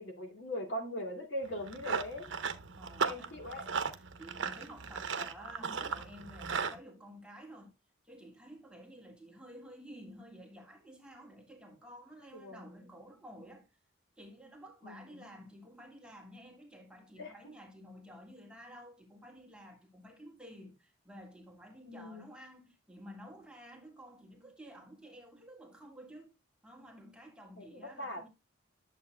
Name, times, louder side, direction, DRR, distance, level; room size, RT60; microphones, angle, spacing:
voice 1, 0.0-2.3 3.0-3.7 12.4-12.8 14.8-15.2 17.2-17.3 21.8-22.2 27.6-28.3, left 1 dB, 65° left, 2.3 m, -41 dB
Run, 1.5-6.8, right 5 dB, 70° right, 0.8 m, -37 dB
voice 2, 2.7-3.4 3.9-7.7 8.0-13.7 14.2-26.3 26.6-28.3, equal, 5° right, 1.6 m, -52 dB
11.0 x 7.4 x 2.2 m
head